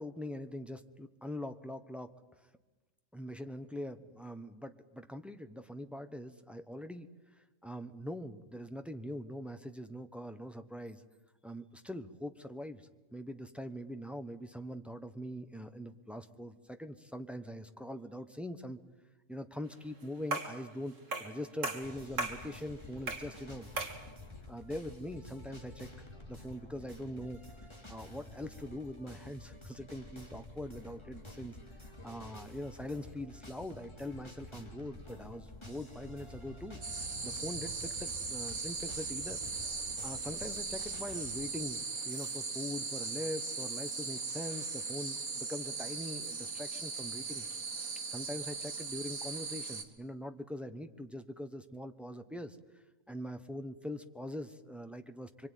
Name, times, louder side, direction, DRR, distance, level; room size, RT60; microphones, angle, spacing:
voice 1, 0.0-2.1 3.1-7.1 7.4-11.0 11.4-18.8 19.3-23.7 24.5-25.9 26.3-27.4 27.9-31.6 32.0-39.4 40.0-47.5 47.7-52.6 53.1-55.5, left 1 dB, ahead, 8 dB, 1.0 m, -43 dB
sound 1, 20.3-20.6 21.1-21.4 21.6-22.4 23.1-23.3 23.8-24.0, right 3 dB, 65° right, 2.8 m, -36 dB
sound 2, 21.8-41.4, left 2 dB, 20° left, 3.2 m, -50 dB
sound 3, 36.8-49.8, right 4 dB, 85° right, 2.4 m, -39 dB
24.5 x 24.5 x 9.3 m, 1.2 s
omnidirectional pair, 1.4 m